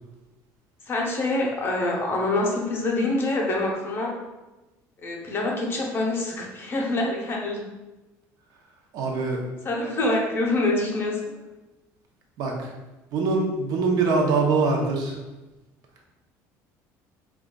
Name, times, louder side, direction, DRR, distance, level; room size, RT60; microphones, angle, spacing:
voice 1, 0.9-4.2 5.0-7.6 9.6-11.2, left 2 dB, 35° left, -1 dB, 0.7 m, -25 dB
voice 2, 8.9-9.4 12.4-12.7 13.1-15.2, right 3 dB, 65° right, 0 dB, 0.7 m, -23 dB
4.9 x 2.4 x 2.3 m, 1.1 s
cardioid pair, 120°, 7 cm